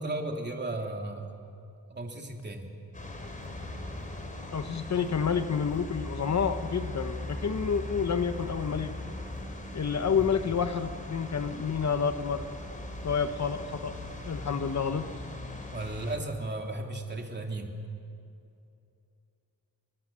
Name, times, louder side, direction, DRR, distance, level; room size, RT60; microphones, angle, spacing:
voice 1, 0.0-1.4 1.9-2.7 10.2-10.3 15.7-17.7, right 2 dB, 30° right, 2 dB, 3.1 m, -35 dB
sound 1, 2.9-16.2, left 1 dB, 20° left, 3.6 m, -39 dB
voice 2, 4.5-8.9 9.7-12.5 13.0-14.0 14.2-15.1, left 6 dB, 50° left, 9 dB, 1.0 m, -29 dB
29.0 x 24.0 x 7.6 m, 2.6 s
wide cardioid pair, 140°, 36 cm